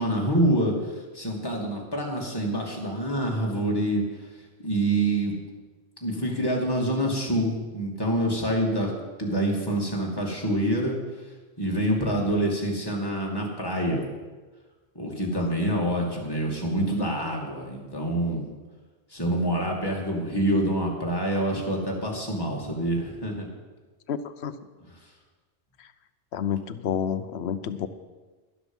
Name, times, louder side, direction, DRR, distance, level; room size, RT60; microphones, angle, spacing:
voice 1, 0.0-4.3 4.6-5.3 6.0-8.9 9.2-11.3 11.6-14.0 14.9-18.5 19.1-23.5 25.0-25.1, right 1 dB, 20° left, -2 dB, 2.5 m, -26 dB
voice 2, 24.1-24.5 26.3-27.9, left 8 dB, 70° left, 13 dB, 1.0 m, -29 dB
12.0 x 12.0 x 5.5 m, 1.3 s
omnidirectional pair, 1.1 m